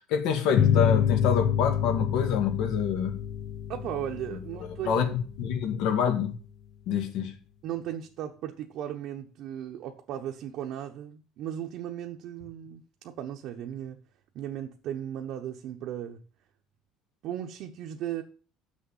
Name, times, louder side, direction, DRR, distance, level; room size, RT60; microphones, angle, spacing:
voice 1, 0.1-3.2 4.8-6.3 6.9-7.4, left 7 dB, 70° left, 1.9 m, -27 dB
sound 1, 0.6-5.7, left 9 dB, 50° left, 1.1 m, -27 dB
voice 2, 3.7-5.2 7.6-14.0 14.3-16.2 17.2-18.2, right 10 dB, 60° right, 1.0 m, -36 dB
6.7 x 6.5 x 7.2 m
cardioid pair, 150°, 0 cm